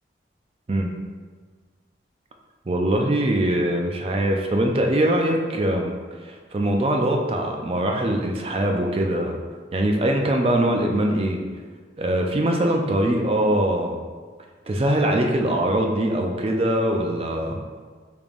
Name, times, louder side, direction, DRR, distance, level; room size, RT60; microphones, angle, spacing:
voice 1, 2.7-5.9 6.2-9.4 9.7-11.4 12.0-14.0 14.7-17.6, right 1 dB, 30° right, 2 dB, 0.4 m, -22 dB
5.1 x 3.3 x 2.5 m, 1.5 s
head